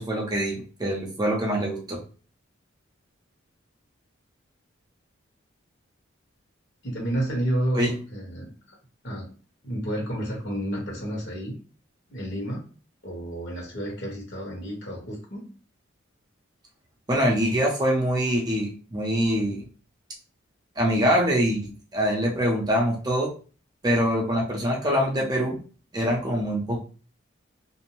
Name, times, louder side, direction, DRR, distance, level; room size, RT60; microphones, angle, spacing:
voice 1, 0.0-2.0 7.7-7.9 17.1-19.6 20.8-23.3 23.8-25.6 25.9-26.8, equal, 20° right, -2 dB, 0.6 m, -24 dB
voice 2, 6.8-8.5 9.0-9.3 9.6-11.6 12.1-12.6 13.0-15.5, right 1 dB, 60° left, -3 dB, 1.2 m, -30 dB
2.6 x 2.0 x 2.9 m, 0.37 s
head